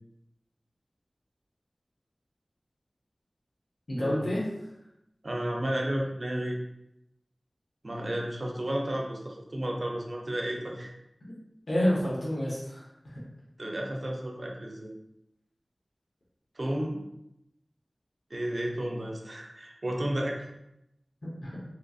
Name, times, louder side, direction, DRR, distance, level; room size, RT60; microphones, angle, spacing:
voice 1, 3.9-4.5 11.2-11.3 11.7-12.8 13.1-13.2 21.2-21.6, equal, 85° left, -6 dB, 0.8 m, -29 dB
voice 2, 5.2-6.6 7.8-10.9 13.6-14.9 16.6-17.0 18.3-20.4, right 1 dB, 60° right, 0 dB, 0.5 m, -32 dB
3.0 x 2.5 x 2.3 m, 0.86 s
wide cardioid pair, 45°, 0 cm